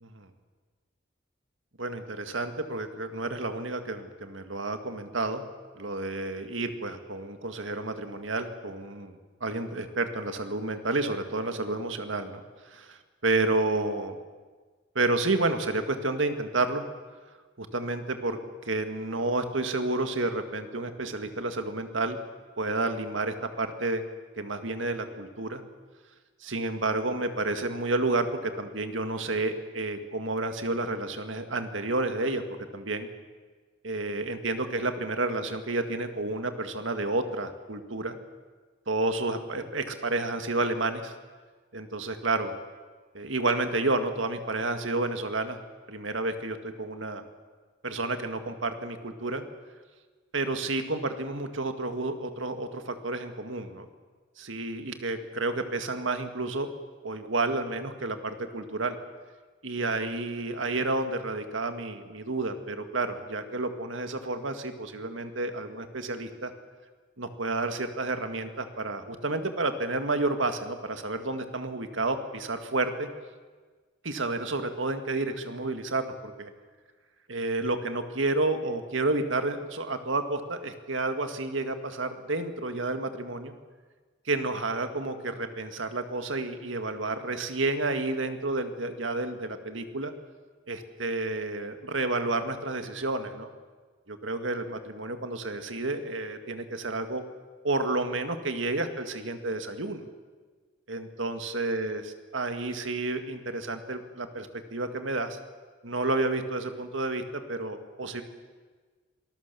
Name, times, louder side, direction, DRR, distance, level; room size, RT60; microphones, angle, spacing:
voice 1, 1.8-5.4 5.8-14.2 15.0-16.8 17.6-18.4 18.7-22.2 22.6-24.0 24.4-25.6 26.4-32.4 32.7-33.1 33.8-38.2 38.9-41.2 41.7-42.5 43.1-45.6 45.9-47.2 47.8-49.4 50.3-53.9 54.4-56.7 57.0-59.0 59.6-66.5 67.2-73.1 74.0-76.5 77.3-83.5 84.3-90.1 90.7-93.5 94.1-97.2 97.6-100.0 100.9-102.0 102.3-105.4 105.8-108.2, right 2 dB, 75° right, 7 dB, 2.0 m, -30 dB
26.5 x 19.5 x 7.0 m, 1.4 s
head